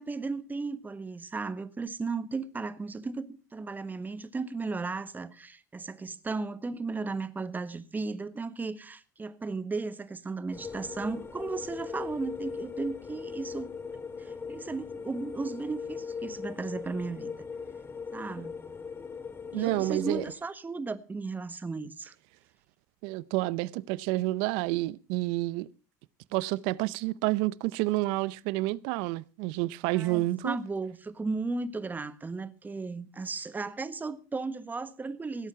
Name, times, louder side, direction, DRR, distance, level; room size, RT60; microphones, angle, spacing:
voice 1, 0.0-13.7 14.2-17.3 18.1-18.6 19.5-22.1 29.9-35.5, right 3 dB, 20° right, 1.3 m, -35 dB
sound 1, 10.5-20.3, left 5 dB, 25° left, 1.5 m, -39 dB
voice 2, 19.5-20.2 23.0-25.7 26.3-30.6, right 19 dB, 70° right, 0.6 m, -29 dB
17.0 x 8.3 x 5.8 m
hypercardioid pair, 85°, 9 cm